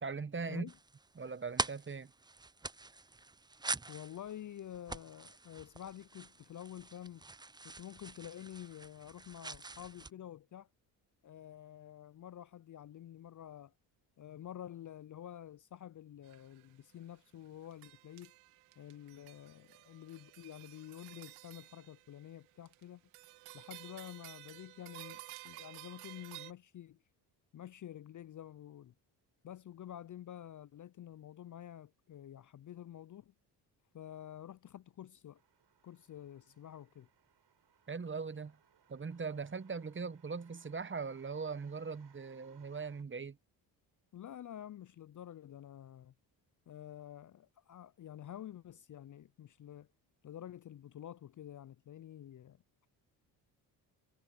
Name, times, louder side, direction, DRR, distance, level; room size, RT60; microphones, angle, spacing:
voice 1, 0.0-0.7 1.2-2.1 37.9-38.6 38.9-43.4, right 5 dB, 25° right, 1.1 m, -40 dB
sound 1, 0.7-10.1, right 3 dB, 10° right, 0.5 m, -44 dB
voice 2, 3.9-7.2 7.6-10.7 11.2-13.7 14.2-18.3 18.8-23.0 23.5-27.0 27.5-28.9 29.4-33.3 33.9-35.4 35.8-37.1 44.1-46.1 46.7-49.9 50.2-52.9, left 11 dB, 40° left, 0.6 m, -49 dB
sound 2, 16.2-16.7 17.2-17.3 17.7-22.8 23.1-26.5, right 20 dB, 85° right, 2.4 m, -53 dB
sound 3, 35.3-43.0, right 8 dB, 55° right, 7.8 m, -68 dB
supercardioid pair, 55°, 48 cm